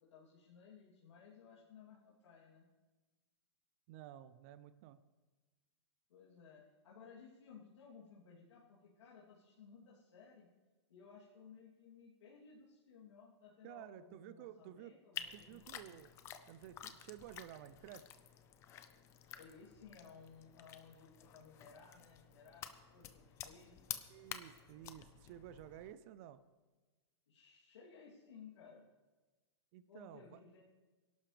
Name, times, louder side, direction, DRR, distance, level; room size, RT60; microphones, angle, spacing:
voice 1, 0.0-2.7 6.1-10.5 10.9-15.8 19.3-23.7 27.3-28.8 29.9-30.6, left 6 dB, 90° left, -6 dB, 2.9 m, -59 dB
voice 2, 3.9-5.0 13.6-14.9 15.3-16.1 16.5-18.1 24.1-26.4 29.7-30.4, right 11 dB, 30° right, 13 dB, 0.4 m, -53 dB
sound 1, 15.1-25.9, left 10 dB, 20° left, 0.6 m, -51 dB
22.5 x 11.5 x 3.3 m, 1.2 s
supercardioid pair, 165°, 15 cm